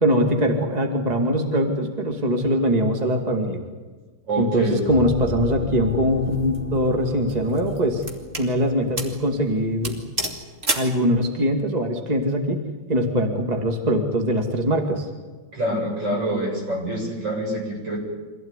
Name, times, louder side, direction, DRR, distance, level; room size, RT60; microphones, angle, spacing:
voice 1, 0.0-3.6 4.4-8.0 8.4-10.0 10.7-12.6 12.9-15.1, equal, 20° right, 4 dB, 2.4 m, -22 dB
voice 2, 4.3-4.8 15.5-18.0, right 1 dB, 75° right, -1 dB, 8.3 m, -26 dB
sound 1, 4.7-10.6, left 3 dB, 20° left, 3.1 m, -37 dB
sound 2, 6.3-6.6 7.3-8.5 9.0-9.2 9.5-9.6 9.8-11.0, right 2 dB, 40° right, 3.3 m, -29 dB
25.5 x 16.5 x 9.8 m, 1.4 s
omnidirectional pair, 2.0 m